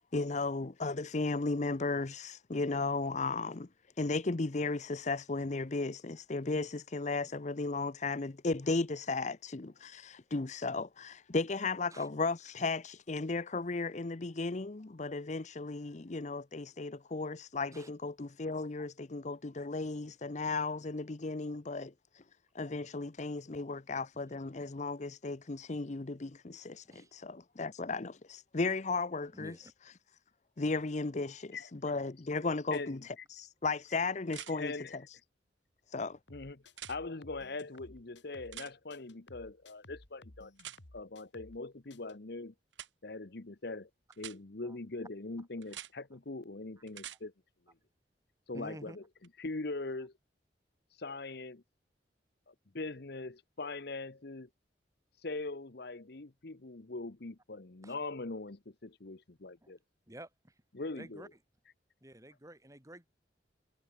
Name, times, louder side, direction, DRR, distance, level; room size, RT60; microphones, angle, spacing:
voice 1, 0.1-3.7 4.0-22.2 22.5-29.5 30.6-35.0 35.9-36.2, left 3 dB, 40° left, 0.7 m, -35 dB
voice 2, 29.3-29.7 44.6-44.8 48.5-49.0 57.8-57.9 59.6-59.7 60.1-60.5 61.0-61.3 62.0-63.1, right 1 dB, 20° right, 3.5 m, -50 dB
voice 3, 31.5-31.9 32.7-33.0 34.5-35.0 36.3-36.6 36.9-40.5 40.9-42.5 43.0-43.9 44.2-47.3 47.7-47.8 48.5-49.0 49.4-50.1 51.0-51.6 52.5-54.5 55.2-59.8 60.7-61.3, left 3 dB, 60° left, 1.1 m, -41 dB
sound 1, 32.7-32.8 34.3-34.5 36.7-37.0 38.5-38.7 40.6-40.8 42.7-42.9 44.1-44.4 45.6-45.9 46.9-47.2 49.2-49.3, right 11 dB, 85° right, 1.4 m, -46 dB
sound 2, 36.3-38.6 38.9-41.6 41.9-42.1, left 1 dB, 80° left, 2.6 m, -56 dB
head